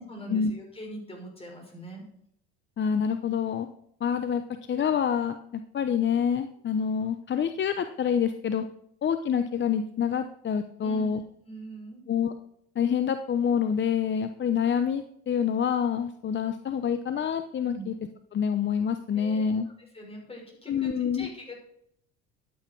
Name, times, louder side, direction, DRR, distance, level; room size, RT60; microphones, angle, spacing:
voice 1, 0.0-2.0 10.8-11.1 11.4-12.0 17.7-17.9 19.1-19.5 19.9-21.6, right 1 dB, 20° left, 0 dB, 5.9 m, -42 dB
voice 2, 2.8-3.7 4.0-4.4 4.7-8.6 9.0-11.2 12.1-12.3 12.8-17.9 18.3-19.7 20.7-21.3, left 7 dB, 35° left, 9 dB, 0.8 m, -27 dB
13.0 x 8.2 x 4.7 m, 0.71 s
supercardioid pair, 80°, 31 cm